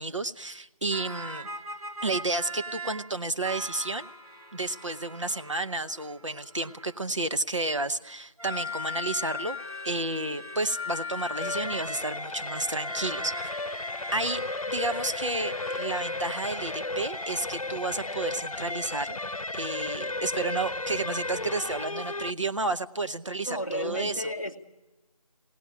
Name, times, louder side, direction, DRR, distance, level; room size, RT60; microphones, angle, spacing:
voice 1, 0.0-1.5 2.0-4.1 4.5-9.6 9.8-13.3 14.1-14.4 14.7-19.2 19.5-24.3, right 2 dB, 55° right, 10 dB, 0.8 m, -31 dB
sound 1, 0.9-3.1 3.4-7.3 8.4-17.4, left 2 dB, 75° right, 2.3 m, -40 dB
sound 2, 11.4-22.3, left 2 dB, 65° left, 0.8 m, -34 dB
voice 2, 23.4-24.6, equal, 30° left, -1 dB, 0.7 m, -33 dB
22.0 x 17.5 x 9.2 m, 1.2 s
figure-of-eight pair, 180°, 19 cm